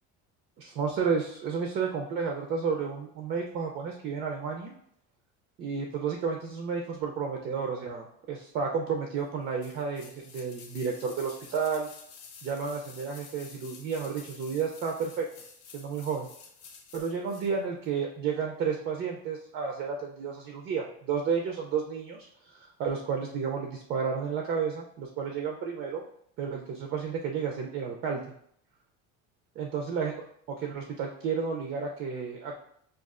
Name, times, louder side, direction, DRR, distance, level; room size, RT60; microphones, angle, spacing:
voice 1, 0.6-4.7 5.6-11.9 12.4-15.3 15.7-16.3 16.9-22.2 22.4-26.0 26.4-28.3 29.6-30.1 30.5-32.6, right 6 dB, 35° right, 1 dB, 0.4 m, -32 dB
sound 1, 9.6-17.5 17.8-17.9, left 5 dB, 50° left, 0.7 m, -50 dB
6.2 x 2.3 x 2.4 m, 0.67 s
cardioid pair, 180°, 30 cm